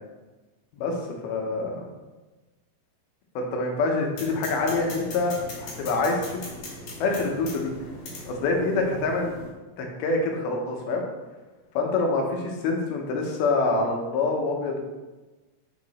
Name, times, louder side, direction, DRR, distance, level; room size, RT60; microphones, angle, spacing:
voice 1, 1.2-1.9 3.4-6.4 7.0-7.7 8.3-9.3 9.8-11.0 11.7-14.8, left 3 dB, 85° left, 1 dB, 3.0 m, -26 dB
sound 1, 4.2-9.5, left 1 dB, 65° left, 3.3 m, -39 dB
7.3 x 4.9 x 4.2 m, 1.2 s
omnidirectional pair, 4.2 m